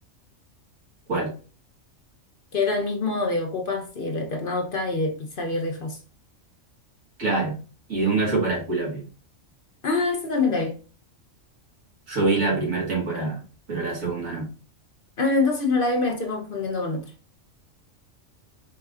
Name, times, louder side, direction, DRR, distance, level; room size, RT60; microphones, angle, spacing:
voice 1, 2.5-6.0 9.8-10.8 15.2-17.1, left 3 dB, 50° left, 0.8 m, -25 dB
voice 2, 7.2-7.6 7.9-9.0 12.1-13.4 13.7-14.5, right 3 dB, 90° right, 2.2 m, -25 dB
4.7 x 3.8 x 2.4 m
omnidirectional pair, 1.3 m